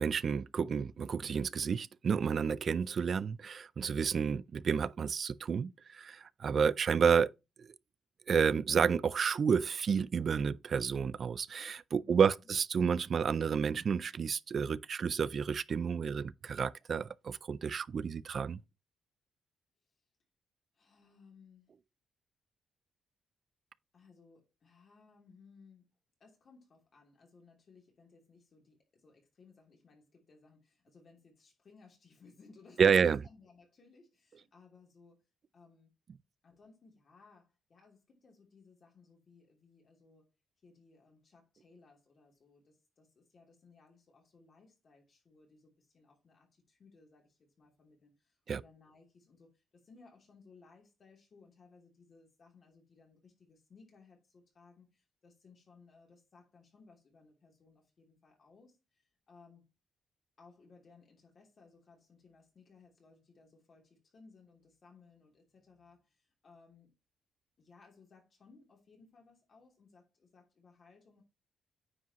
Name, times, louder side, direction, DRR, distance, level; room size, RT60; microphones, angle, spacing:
voice 1, 0.0-7.3 7.6-7.7 8.3-18.6 32.8-33.2 48.5-48.6, right 6 dB, 45° right, 0.4 m, -30 dB
voice 2, 20.7-21.7 23.9-25.9 26.2-35.2 35.5-35.9 36.4-40.3 40.6-59.6 60.4-66.9 67.6-71.2, left 4 dB, 40° left, 2.9 m, -61 dB
9.4 x 4.9 x 2.9 m
cardioid pair, 145°, 0 cm